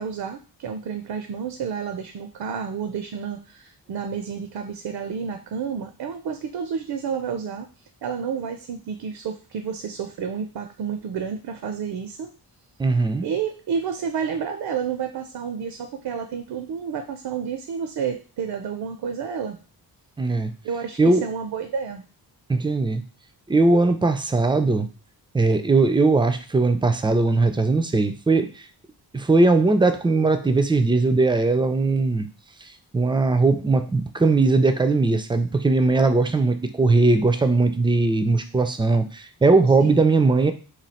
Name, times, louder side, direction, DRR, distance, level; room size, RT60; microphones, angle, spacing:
voice 1, 0.0-7.7 8.0-12.3 13.2-19.6 20.6-22.0 39.8-40.0, right 6 dB, 75° right, 6 dB, 0.5 m, -30 dB
voice 2, 12.8-13.3 20.2-20.5 21.0-21.2 22.5-23.0 23.5-24.9 25.3-28.5 29.1-32.3 32.9-40.5, right 3 dB, 15° right, 9 dB, 0.3 m, -19 dB
3.1 x 2.3 x 4.1 m, 0.36 s
wide cardioid pair, 95°, 39 cm